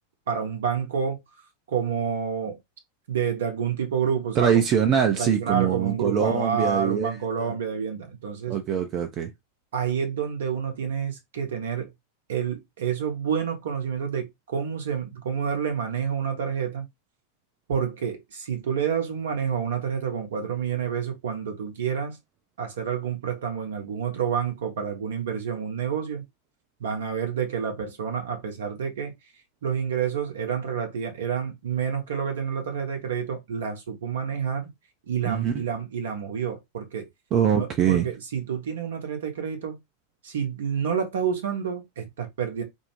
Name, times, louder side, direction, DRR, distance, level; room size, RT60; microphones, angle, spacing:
voice 1, 0.3-1.2 1.7-2.6 3.1-4.7 5.2-8.6 9.7-11.9 12.3-16.9 17.7-22.2 22.6-26.3 26.8-29.1 29.6-34.7 35.1-37.1 37.5-39.8 40.2-42.6, right 7 dB, 60° right, 0.8 m, -28 dB
voice 2, 4.4-7.5 8.5-9.3 35.3-35.5 37.3-38.1, right 8 dB, 30° right, 0.4 m, -23 dB
2.5 x 2.0 x 2.9 m
figure-of-eight pair, 90°, 0 cm